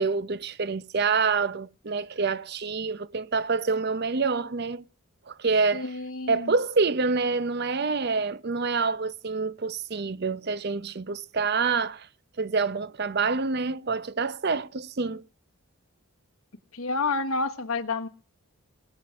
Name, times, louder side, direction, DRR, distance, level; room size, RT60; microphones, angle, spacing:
voice 1, 0.0-4.8 5.3-5.9 6.3-12.1 12.4-15.2, right 4 dB, 50° right, 0.6 m, -27 dB
voice 2, 5.7-6.5 16.7-18.1, left 3 dB, 75° left, 1.4 m, -29 dB
19.5 x 7.1 x 7.5 m
head